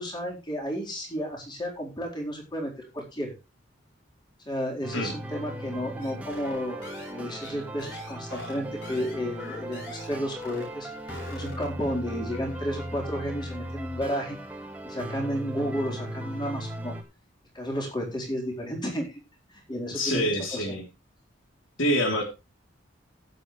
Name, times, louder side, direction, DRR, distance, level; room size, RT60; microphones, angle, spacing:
voice 1, 0.0-3.3 4.5-6.8 7.1-10.9 11.3-14.4 14.8-16.9 17.5-19.1 19.7-20.6, equal, 20° left, -1 dB, 4.2 m, -32 dB
sound 1, 4.8-17.0, equal, 5° right, 1.9 m, -38 dB
sound 2, 6.0-10.2 10.4-10.7 11.0-11.8, left 2 dB, 65° left, 7.0 m, -43 dB
voice 2, 19.9-20.9 21.8-22.2, equal, 85° left, 3 dB, 3.3 m, -26 dB
16.0 x 8.0 x 3.3 m, 0.27 s
head